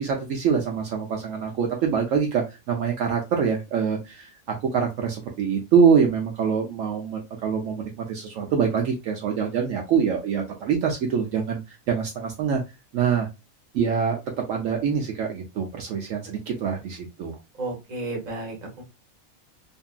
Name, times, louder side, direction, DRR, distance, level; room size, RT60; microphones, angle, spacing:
voice 1, 0.0-11.6 11.9-12.6 12.9-13.3 13.7-14.2 14.5-17.4, right 6 dB, 70° right, 1 dB, 0.9 m, -24 dB
voice 2, 17.6-18.8, right 2 dB, 35° right, 1 dB, 0.9 m, -32 dB
2.7 x 2.6 x 2.2 m, 0.24 s
omnidirectional pair, 1.5 m